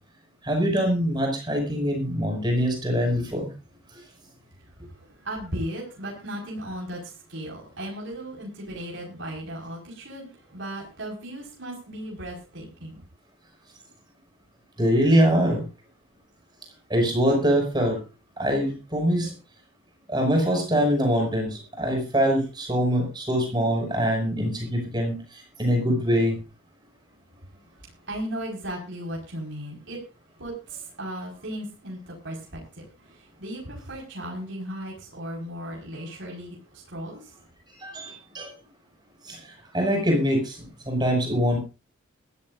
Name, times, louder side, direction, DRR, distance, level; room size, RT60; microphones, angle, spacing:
voice 1, 0.4-3.5 14.8-15.6 16.9-18.0 18.4-19.3 20.1-25.2 25.6-26.4 37.8-38.5 39.3-39.4 39.7-40.6 40.9-41.6, equal, 20° right, 2 dB, 5.9 m, -23 dB
voice 2, 4.8-13.0 28.0-30.0 30.4-37.4, right 1 dB, 55° right, -2 dB, 5.0 m, -36 dB
21.5 x 14.0 x 2.6 m, 0.31 s
head